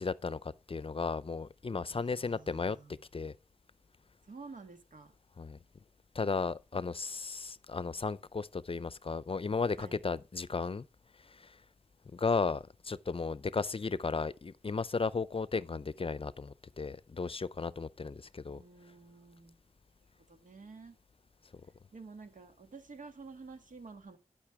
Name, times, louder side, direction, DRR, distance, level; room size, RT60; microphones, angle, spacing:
voice 1, 0.0-2.8 3.1-3.3 5.4-5.6 6.1-10.9 11.2-11.6 12.1-18.6, left 4 dB, 45° left, 0.5 m, -35 dB
voice 2, 1.9-3.0 4.2-5.1 6.7-6.9 9.8-10.0 18.5-19.6 20.2-21.0 21.9-24.2, right 4 dB, 80° right, 1.8 m, -51 dB
12.0 x 5.8 x 4.7 m
wide cardioid pair, 75°, 13 cm